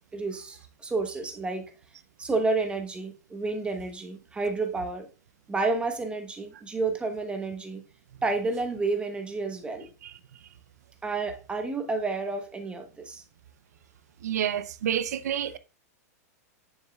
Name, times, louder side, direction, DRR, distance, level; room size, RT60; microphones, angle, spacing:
voice 1, 0.1-1.7 2.2-5.1 5.5-7.8 8.2-9.9 11.0-13.2, right 3 dB, 10° right, 1.1 m, -30 dB
voice 2, 14.2-15.6, right 10 dB, 80° right, 0.6 m, -28 dB
7.2 x 6.4 x 2.3 m
hypercardioid pair, 130°, 9 cm